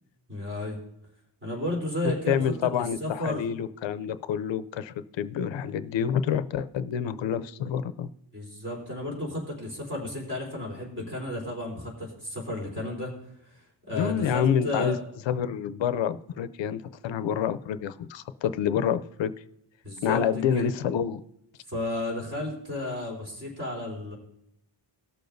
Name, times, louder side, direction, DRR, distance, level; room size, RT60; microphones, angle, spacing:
voice 1, 0.3-0.8 1.4-2.4 2.7-3.4 8.3-13.1 13.5-15.0 19.8-20.2 20.5-20.7 21.7-24.1, left 1 dB, 25° right, -3 dB, 3.7 m, -33 dB
voice 2, 2.3-8.1 13.9-15.0 15.3-19.3 20.0-21.2, left 8 dB, 80° left, 12 dB, 0.6 m, -28 dB
18.5 x 6.8 x 2.6 m, 0.79 s
wide cardioid pair, 160°, 44 cm